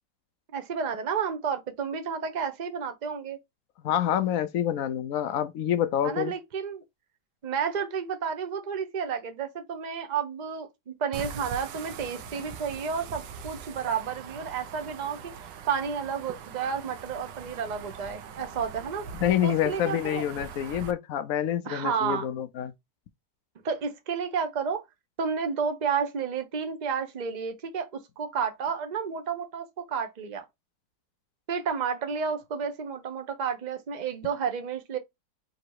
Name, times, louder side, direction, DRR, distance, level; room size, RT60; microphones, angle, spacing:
voice 1, 0.5-3.4 6.0-6.8 7.4-15.3 15.7-19.0 19.4-20.2 21.7-22.3 23.6-24.8 25.2-30.4 31.5-35.0, right 6 dB, 50° right, 0.5 m, -31 dB
voice 2, 3.8-6.3 19.2-22.7, left 10 dB, 70° left, 0.8 m, -27 dB
sound 1, 11.1-20.9, right 6 dB, 85° right, 1.4 m, -42 dB
3.8 x 2.8 x 4.6 m
omnidirectional pair, 1.9 m